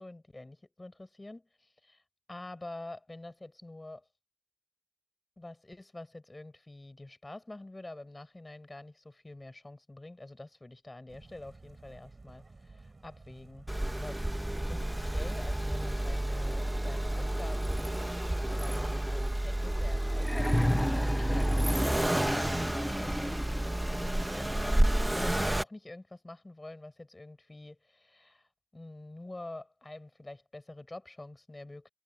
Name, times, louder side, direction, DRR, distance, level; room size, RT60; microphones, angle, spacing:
voice 1, 0.0-2.0 2.3-4.0 5.4-13.7 13.9-17.8 18.4-31.9, left 2 dB, 35° left, 5.6 m, -47 dB
sound 1, 11.1-16.7, right 3 dB, 65° right, 3.4 m, -55 dB
Accelerating revving vroom, 13.7-25.6, right 1 dB, 20° right, 1.1 m, -30 dB
sound 2, 20.2-24.0 25.2-25.3, left 1 dB, 15° left, 0.4 m, -33 dB
wide cardioid pair, 50°, 0 cm